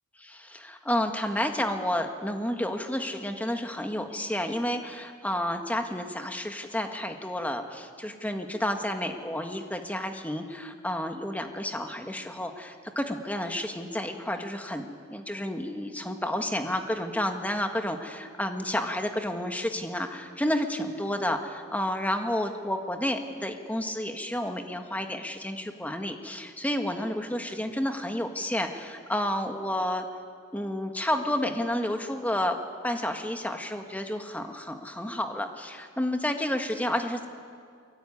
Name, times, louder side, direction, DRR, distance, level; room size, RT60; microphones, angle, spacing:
voice 1, 0.2-30.1 30.5-37.3, left 1 dB, 5° left, 5 dB, 1.7 m, -31 dB
23.5 x 22.5 x 9.8 m, 2.2 s
head